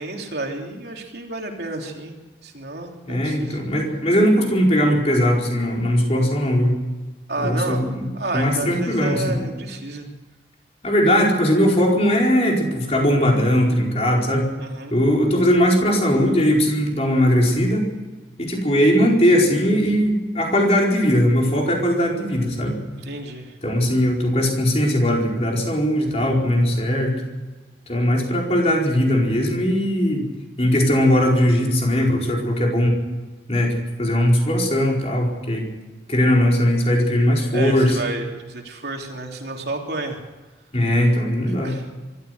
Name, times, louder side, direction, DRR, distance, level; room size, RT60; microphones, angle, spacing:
voice 1, 0.0-2.1 2.4-3.6 7.3-7.8 8.1-10.1 14.6-14.9 23.0-23.5 37.5-40.2 41.5-41.8, right 2 dB, 65° right, 1 dB, 3.2 m, -30 dB
voice 2, 3.1-6.8 7.4-8.0 8.3-9.4 10.8-14.5 14.9-17.9 18.4-22.8 23.6-27.1 27.9-30.3 30.6-33.0 33.5-35.6 36.1-38.0 40.7-41.8, equal, 35° left, 0 dB, 4.6 m, -19 dB
24.0 x 13.5 x 8.0 m, 1.2 s
head